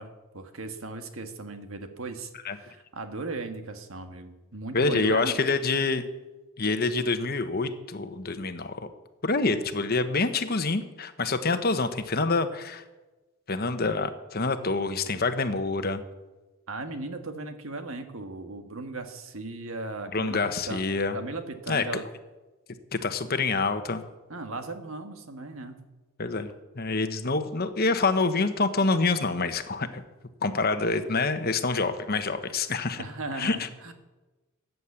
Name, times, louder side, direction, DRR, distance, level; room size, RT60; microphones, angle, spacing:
voice 1, 0.0-5.3 16.7-20.4 20.7-20.8 21.1-22.1 24.3-25.7 33.0-33.9, right 2 dB, 70° right, 7 dB, 1.5 m, -37 dB
voice 2, 4.7-6.0 6.6-8.9 9.2-12.8 13.5-16.0 20.1-21.1 21.7-21.8 22.9-24.0 26.2-30.0 30.4-33.0 33.4-33.7, left 3 dB, 45° left, 9 dB, 1.1 m, -26 dB
14.5 x 9.4 x 8.3 m, 1.2 s
head